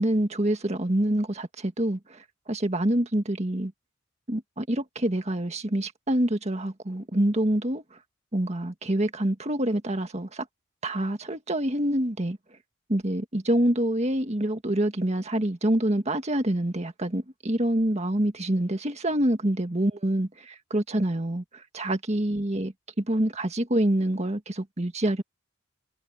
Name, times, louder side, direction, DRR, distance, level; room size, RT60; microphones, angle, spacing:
voice 1, 0.0-2.2 2.5-3.7 4.3-7.8 8.3-10.5 10.8-12.4 12.9-25.2, right 1 dB, 35° right, 1.7 m, -26 dB
head